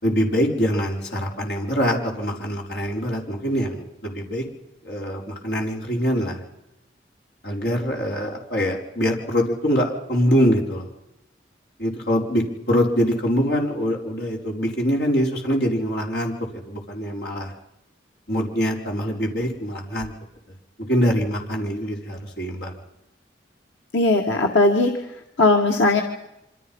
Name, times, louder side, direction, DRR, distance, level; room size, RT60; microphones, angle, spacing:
voice 1, 0.0-4.4 4.8-6.4 7.4-10.9 11.8-17.5 18.3-20.1 20.8-22.7, equal, 60° left, 0 dB, 5.2 m, -24 dB
voice 2, 23.9-26.0, left 2 dB, 85° left, 1 dB, 2.2 m, -19 dB
27.0 x 26.0 x 5.7 m, 0.88 s
head